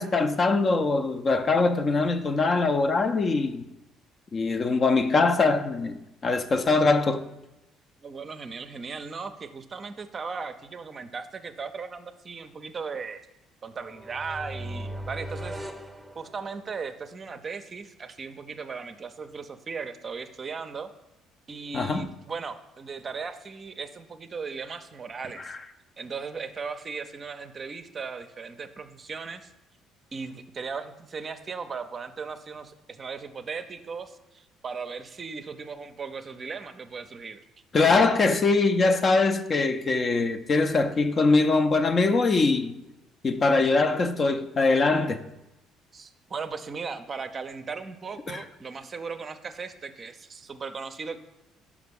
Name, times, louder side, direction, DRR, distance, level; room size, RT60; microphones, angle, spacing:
voice 1, 0.0-3.6 4.3-7.2 21.7-22.1 25.5-25.6 37.7-42.7 43.2-45.2 48.3-48.4, left 3 dB, 35° left, 0.5 m, -22 dB
voice 2, 8.0-13.2 13.6-15.6 16.1-20.9 21.5-25.5 26.0-29.5 30.1-37.4 45.9-51.2, right 5 dB, 35° right, 0.5 m, -37 dB
sound 1, 13.8-16.8, right 1 dB, 5° right, 0.8 m, -38 dB
5.8 x 4.9 x 5.3 m
figure-of-eight pair, 50°, 0 cm